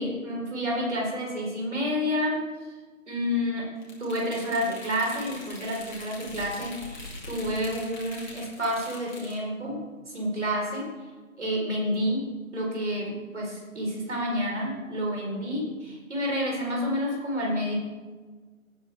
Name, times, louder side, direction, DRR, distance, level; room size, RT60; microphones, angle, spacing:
voice 1, 0.0-2.4 3.1-3.7 4.0-9.8 10.1-10.9 11.4-17.7, equal, 55° right, -2 dB, 4.4 m, -29 dB
sound 1, 3.8-9.4, left 2 dB, 35° left, 2.9 m, -43 dB
16.5 x 9.2 x 3.5 m, 1.4 s
figure-of-eight pair, 175°, 41 cm